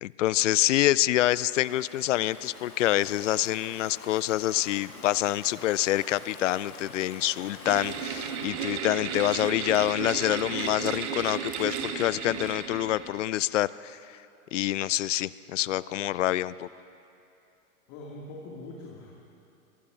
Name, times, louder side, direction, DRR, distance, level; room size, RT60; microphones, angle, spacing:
voice 1, 0.0-14.2 14.5-16.7, left 14 dB, 55° left, 19 dB, 0.5 m, -26 dB
Stream / Ocean, 1.3-8.6, left 3 dB, 75° left, 2.3 m, -47 dB
sound 1, 7.6-13.2, right 7 dB, 50° right, 1.6 m, -34 dB
voice 2, 17.9-19.1, left 2 dB, 35° left, -3 dB, 2.2 m, -42 dB
24.5 x 23.5 x 2.5 m, 2.7 s
figure-of-eight pair, 105°, 44 cm